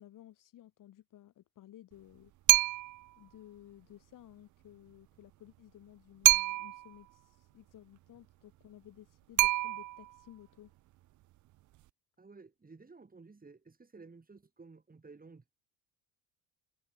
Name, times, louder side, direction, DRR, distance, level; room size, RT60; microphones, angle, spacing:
voice 1, 0.0-2.3 3.2-10.7, left 13 dB, 55° left, 3.2 m, -55 dB
sound 1, 2.5-3.1 6.2-6.9 9.4-10.2, right 17 dB, 50° right, 0.6 m, -26 dB
voice 2, 12.2-15.5, right 4 dB, 25° right, 6.1 m, -54 dB
hypercardioid pair, 70°, 37 cm